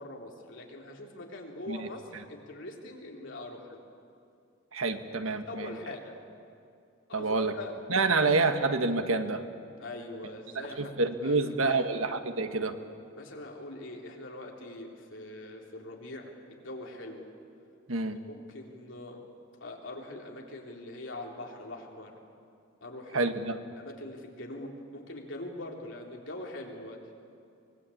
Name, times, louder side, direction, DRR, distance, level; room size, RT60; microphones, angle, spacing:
voice 1, 0.0-3.8 5.3-6.2 7.1-7.7 8.0-8.2 9.8-11.9 13.2-17.3 18.3-19.2 19.6-22.2 22.8-23.3 23.7-27.0, left 1 dB, 65° left, 0 dB, 3.7 m, -43 dB
voice 2, 4.7-5.7 7.1-7.5 7.9-9.4 10.8-12.8 17.9-18.2 23.1-23.6, right 3 dB, 85° right, 7 dB, 1.6 m, -27 dB
24.0 x 21.0 x 8.6 m, 2.5 s
head